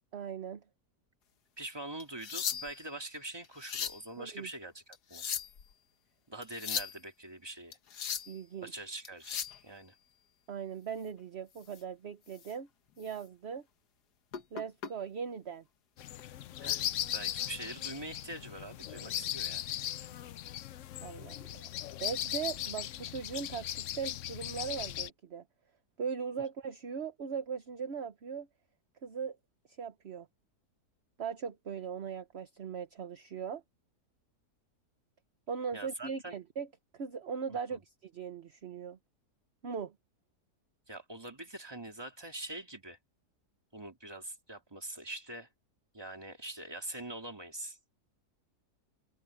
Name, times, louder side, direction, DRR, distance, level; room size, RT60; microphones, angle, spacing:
voice 1, 0.1-0.6 4.2-4.5 8.3-8.7 10.5-12.7 13.0-13.6 14.5-15.6 21.0-21.7 22.0-25.4 26.0-28.5 29.0-29.4 29.7-30.3 31.2-33.6 35.5-36.7 36.9-39.0 39.6-39.9, right 6 dB, 45° right, 1.1 m, -39 dB
voice 2, 1.6-5.2 6.3-7.8 8.6-9.9 16.6-19.7 35.7-36.4 37.7-37.8 40.9-43.0 43.7-45.5 45.9-47.8, right 1 dB, 15° right, 2.4 m, -44 dB
sound 1, 2.0-2.9 3.4-4.0 4.9-5.7 6.4-7.0 7.7-8.4 9.1-9.6 11.6-11.8 12.3-12.5 13.0-13.1 14.3-14.9 16.0-16.2, left 8 dB, 85° left, 1.8 m, -37 dB
sound 2, 16.0-25.1, left 12 dB, 65° left, 0.8 m, -38 dB
open air
omnidirectional pair, 1.7 m